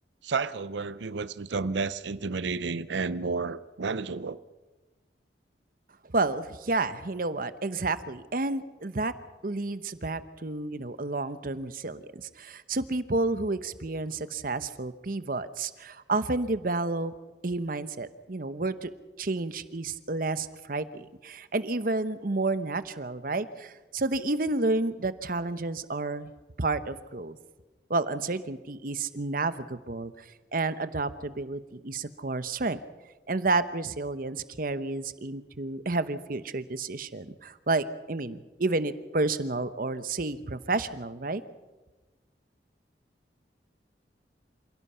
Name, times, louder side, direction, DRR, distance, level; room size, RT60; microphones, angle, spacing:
voice 1, 0.2-4.4, right 4 dB, 90° right, 16 dB, 0.6 m, -31 dB
voice 2, 6.1-9.1 9.4-17.1 17.4-18.9 19.2-26.3 26.6-27.4 27.9-30.2 30.5-32.8 33.3-41.4, right 3 dB, 50° right, 13 dB, 0.9 m, -30 dB
27.0 x 16.5 x 5.7 m, 1.2 s
head